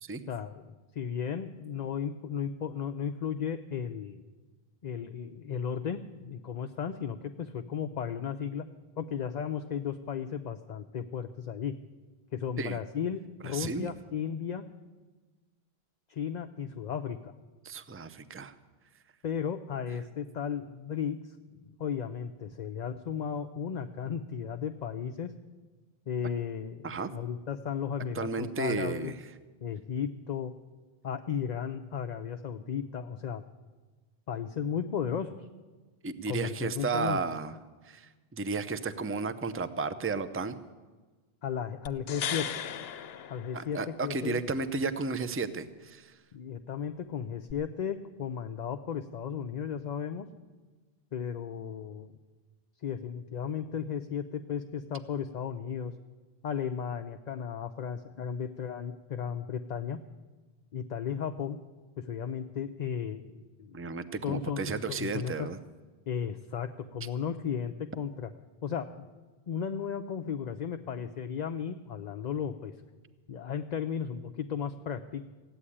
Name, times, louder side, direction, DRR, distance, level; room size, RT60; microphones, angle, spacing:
voice 1, 0.3-4.2 4.8-8.7 9.0-11.8 12.3-14.6 16.1-17.3 19.2-25.3 26.1-29.1 29.6-30.5 31.0-33.4 34.3-35.5 36.3-37.2 41.4-42.5 43.3-44.4 46.3-50.3 51.1-52.1 52.8-55.9 56.4-60.0 60.7-61.6 62.0-63.8 64.2-65.5 66.1-68.3 68.6-69.1 69.5-72.7 73.3-75.3, left 7 dB, 50° left, 8 dB, 0.6 m, -35 dB
voice 2, 13.4-13.9 17.6-18.5 26.8-27.1 28.1-29.1 36.0-37.5 37.8-40.6 43.5-46.1 63.7-65.6, right 4 dB, 15° right, 12 dB, 0.5 m, -33 dB
sound 1, 41.9-44.1 47.5-47.6, left 8 dB, 75° left, 0.9 m, -37 dB
16.0 x 8.6 x 9.9 m, 1.3 s
omnidirectional pair, 1.0 m